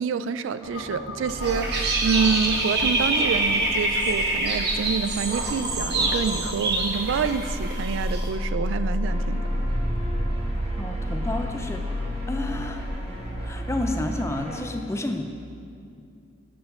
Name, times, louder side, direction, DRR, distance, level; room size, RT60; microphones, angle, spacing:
voice 1, 0.0-9.4, right 6 dB, 75° right, 12 dB, 0.3 m, -27 dB
sound 1, 0.6-12.9, left 1 dB, 90° left, 0.7 m, -32 dB
Dog / Bird, 1.3-8.3, right 2 dB, 55° right, 1.0 m, -26 dB
sound 2, 9.0-14.6, equal, 30° right, 1.2 m, -34 dB
voice 2, 10.8-11.8 12.3-12.9 13.4-15.2, left 1 dB, 15° left, 6 dB, 0.3 m, -30 dB
6.8 x 5.6 x 5.6 m, 2.4 s
head